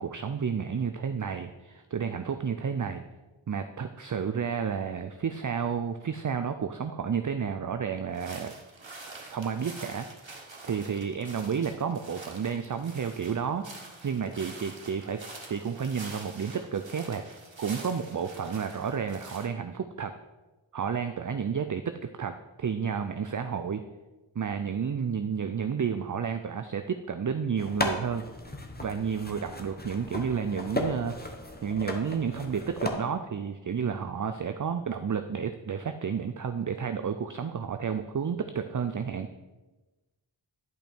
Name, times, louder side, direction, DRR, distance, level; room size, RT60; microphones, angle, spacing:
voice 1, 0.0-3.0 3.5-8.5 9.3-15.2 15.5-20.1 20.7-23.8 24.4-28.2 28.8-31.3 31.6-39.3, right 6 dB, 45° right, 8 dB, 0.5 m, -31 dB
sound 1, 8.1-19.5, right 3 dB, 70° right, 1.6 m, -46 dB
sound 2, 27.6-32.9, left 1 dB, 20° left, 1.1 m, -35 dB
11.0 x 5.5 x 4.4 m, 1.2 s
wide cardioid pair, 50°, 46 cm